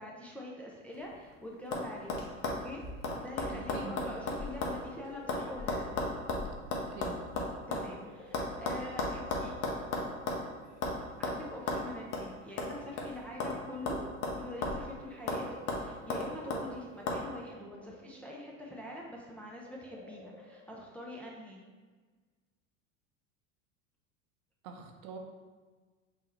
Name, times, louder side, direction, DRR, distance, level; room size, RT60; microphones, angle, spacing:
voice 1, 0.0-2.3 2.6-2.9 3.2-5.8 7.7-9.5 11.2-14.0 14.4-21.6, left 1 dB, 5° left, -3 dB, 0.5 m, -44 dB
sound 1, 0.9-1.3 1.7-1.8 2.1-4.8 5.1-7.9 8.3-10.5 10.8-11.0 11.2-11.4 11.7-11.8 12.1-12.3 12.6-13.6 13.9-14.9 15.3-15.4 15.7-16.6 17.1-17.2, left 2 dB, 50° left, 0.9 m, -34 dB
voice 2, 3.5-3.9 6.7-7.2 24.6-25.2, right 5 dB, 55° right, 3 dB, 0.7 m, -45 dB
sound 2, 4.5-6.6 7.1-11.9 12.8-18.9 19.5-21.1, left 2 dB, 85° left, 1.1 m, -54 dB
5.4 x 2.8 x 3.0 m, 1.4 s
hypercardioid pair, 85°, 41 cm